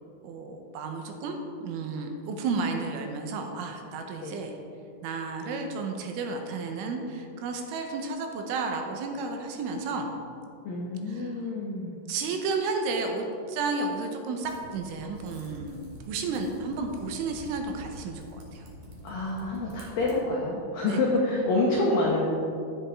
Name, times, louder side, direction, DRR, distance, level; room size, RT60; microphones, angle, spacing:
voice 1, 0.2-4.5 5.0-10.1 11.1-11.5 12.1-15.8 16.1-18.7 20.8-21.0, right 4 dB, 80° right, 3 dB, 3.3 m, -32 dB
voice 2, 10.6-12.0 19.0-22.2, left 2 dB, 80° left, -3 dB, 2.0 m, -27 dB
Typing, 14.4-20.2, right 1 dB, 45° right, 2.4 m, -46 dB
13.0 x 10.5 x 3.7 m, 2.6 s
omnidirectional pair, 5.8 m